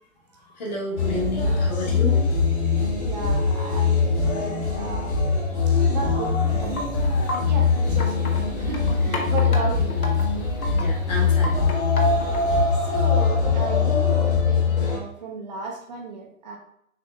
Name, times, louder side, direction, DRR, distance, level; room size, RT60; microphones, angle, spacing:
voice 1, 0.6-2.2 10.7-11.7, left 1 dB, 30° left, -1 dB, 1.0 m, -30 dB
sound 1, 1.0-15.0, left 4 dB, 50° left, 1.5 m, -22 dB
voice 2, 3.0-5.1 5.9-6.7 7.5-8.3 8.6-10.0 12.8-16.6, right 4 dB, 30° right, 0 dB, 0.6 m, -34 dB
Wind chime, 6.5-12.7, left 1 dB, 85° left, 1.0 m, -35 dB
6.3 x 2.7 x 2.3 m, 0.68 s
figure-of-eight pair, 140°, 42 cm